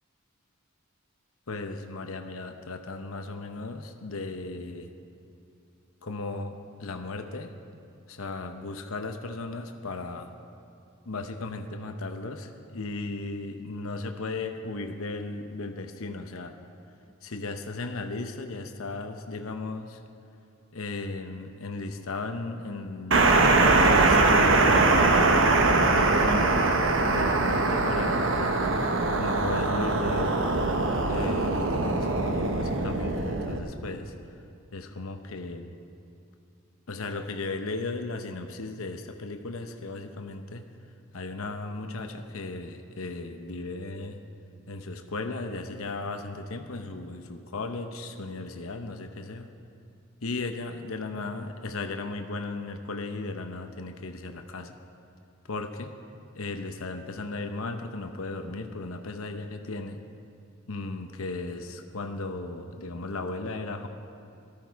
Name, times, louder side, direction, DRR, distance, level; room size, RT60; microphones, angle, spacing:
voice 1, 1.5-4.9 6.0-6.6 6.8-7.5 8.1-10.3 11.1-16.5 17.2-20.0 20.7-25.1 25.8-28.5 29.2-30.4 31.1-34.1 34.7-35.7 36.9-40.6 41.1-44.2 44.7-49.5 50.2-54.7 55.5-55.9 56.4-60.0 60.7-63.9, left 3 dB, 85° left, 6 dB, 0.9 m, -36 dB
sound 1, 23.1-33.6, right 3 dB, 65° right, 1.1 m, -22 dB
17.5 x 13.5 x 4.6 m, 2.6 s
head